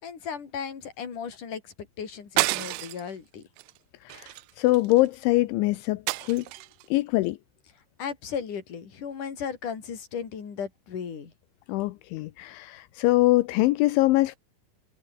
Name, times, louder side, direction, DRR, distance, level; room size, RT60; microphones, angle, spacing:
voice 1, 0.0-3.4 8.0-11.3, left 7 dB, 45° left, 5.0 m, -36 dB
sound 1, 2.4-3.1 3.6-3.8 4.1-5.1 6.1-6.8, right 20 dB, 80° right, 2.5 m, -29 dB
voice 2, 4.1-6.4 6.9-7.4 11.7-14.4, left 19 dB, 80° left, 3.3 m, -23 dB
omnidirectional pair, 5.4 m